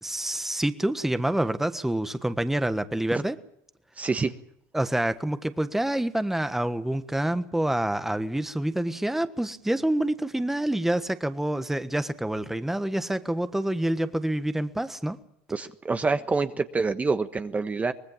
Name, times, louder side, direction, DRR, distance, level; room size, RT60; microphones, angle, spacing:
voice 1, 0.0-3.3 4.7-15.2, right 1 dB, 5° right, 11 dB, 1.4 m, -27 dB
voice 2, 4.0-4.3 15.5-17.9, right 4 dB, 20° right, 9 dB, 1.3 m, -26 dB
24.0 x 19.5 x 7.4 m, 0.73 s
supercardioid pair, 95°, 7 cm